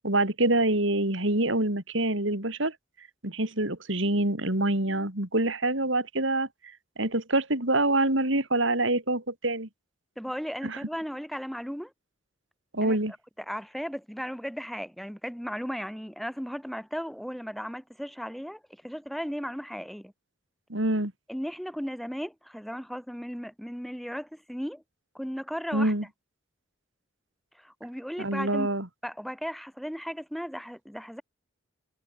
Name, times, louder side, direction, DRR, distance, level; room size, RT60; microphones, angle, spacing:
voice 1, 0.0-2.7 3.2-6.5 7.0-9.7 10.6-10.8 12.7-13.1 20.7-21.1 25.7-26.0 28.2-28.9, right 2 dB, 65° right, 3.9 m, -26 dB
voice 2, 10.2-11.9 12.8-13.0 13.5-20.1 21.3-24.8 25.1-25.9 27.6-28.7 29.0-31.2, equal, ahead, 8.0 m, -36 dB
head